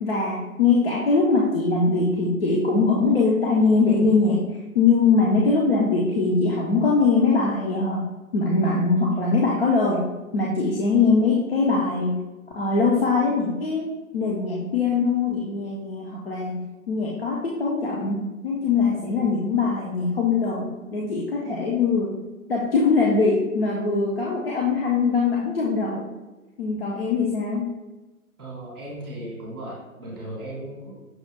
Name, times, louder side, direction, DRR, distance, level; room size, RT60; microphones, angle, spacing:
voice 1, 0.0-8.0 8.3-10.0 10.3-12.1 12.6-16.6 16.9-22.2 22.5-26.1 26.6-27.7, left 4 dB, 45° left, -3 dB, 0.6 m, -22 dB
voice 2, 28.4-30.9, right 1 dB, 5° right, -11 dB, 0.6 m, -36 dB
6.1 x 2.2 x 3.3 m, 1.1 s
figure-of-eight pair, 145°, 43 cm